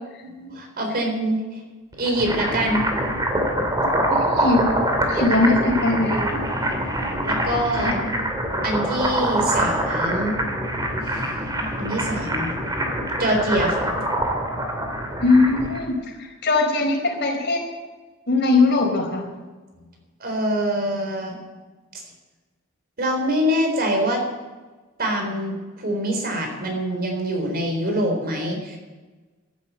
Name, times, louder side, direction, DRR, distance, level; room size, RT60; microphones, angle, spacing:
voice 1, 0.2-1.6 1.9-2.8 7.2-8.0 8.6-10.4 11.0-11.3 11.8-12.6 13.2-13.9 20.2-21.5 23.0-24.2 25.0-28.8, equal, 50° right, 3 dB, 4.0 m, -24 dB
sound 1, 1.9-15.8, right 1 dB, 20° right, 2.5 m, -24 dB
voice 2, 4.1-4.7 5.1-6.2 7.8-8.1 15.2-17.6 18.3-19.2, left 3 dB, 55° left, 1 dB, 4.6 m, -20 dB
14.0 x 12.0 x 8.4 m, 1.3 s
head